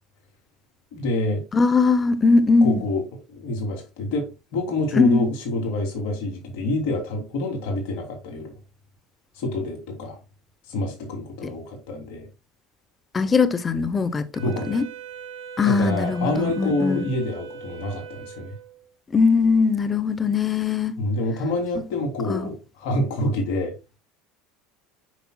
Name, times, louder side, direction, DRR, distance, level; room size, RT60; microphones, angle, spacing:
voice 1, 0.9-1.4 2.6-3.0 3.3-8.5 9.3-10.2 10.7-12.3 14.4-14.8 15.6-18.5 21.0-23.7, left 2 dB, 70° left, 3.1 m, -27 dB
voice 2, 1.5-2.8 4.9-5.3 11.4-11.5 13.1-14.9 15.6-17.1 19.1-21.0 22.3-22.5, left 4 dB, 25° left, 0.7 m, -20 dB
Wind instrument woodwind instrument, 14.3-18.9, right 6 dB, 70° right, 2.2 m, -40 dB
8.2 x 5.7 x 2.3 m
supercardioid pair, 90°, 0 cm